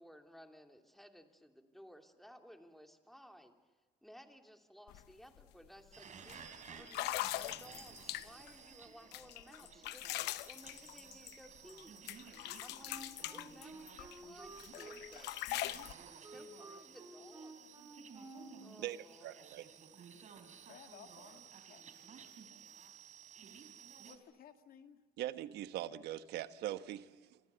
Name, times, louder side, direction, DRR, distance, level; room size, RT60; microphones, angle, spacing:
voice 1, 0.0-3.5 4.0-12.0 12.6-15.9 16.3-17.6 18.6-19.4, equal, ahead, 5 dB, 2.9 m, -58 dB
sound 1, 4.9-5.0 5.4-5.7 6.3-6.4 6.9-8.5 9.1-11.8 12.1-14.2 14.6-15.9, left 16 dB, 85° left, 0.8 m, -41 dB
sound 2, 5.9-24.2, right 7 dB, 45° right, 3.8 m, -55 dB
Wind instrument woodwind instrument, 12.8-18.7, right 2 dB, 20° right, 4.9 m, -53 dB
voice 2, 19.2-19.7 25.2-27.4, right 13 dB, 80° right, 12 dB, 1.2 m, -41 dB
voice 3, 20.7-21.9 24.1-25.0, left 8 dB, 60° left, 7 dB, 2.3 m, -57 dB
27.0 x 26.5 x 7.0 m, 1.3 s
cardioid pair, 110°, 17 cm